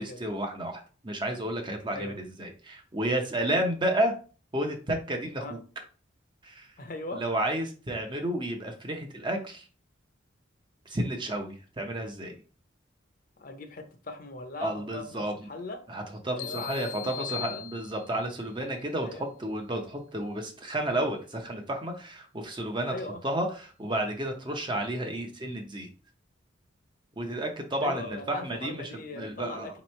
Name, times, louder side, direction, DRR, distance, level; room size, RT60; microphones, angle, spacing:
voice 1, 0.0-4.1 4.5-5.6 6.4-6.7 7.1-9.7 10.9-12.4 14.6-15.3 15.9-22.9 23.2-25.9 27.2-29.7, right 1 dB, 25° right, 3 dB, 0.6 m, -31 dB
voice 2, 6.8-7.2 13.4-15.2 15.5-15.8 16.3-17.6 19.0-19.3 22.9-23.2 27.8-29.8, left 2 dB, 45° left, 6 dB, 0.7 m, -40 dB
sound 1, 16.4-18.3, left 11 dB, 80° left, 0.5 m, -39 dB
3.2 x 3.0 x 4.3 m, 0.37 s
head